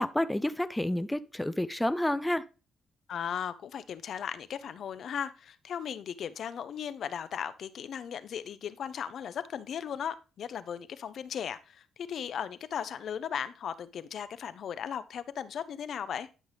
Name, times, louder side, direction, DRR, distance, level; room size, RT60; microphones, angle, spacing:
voice 1, 0.0-2.4, left 1 dB, 10° left, 0.4 m, -29 dB
voice 2, 3.1-16.3, left 8 dB, 60° left, 0.6 m, -37 dB
11.0 x 5.4 x 3.3 m
cardioid pair, 90°, 0 cm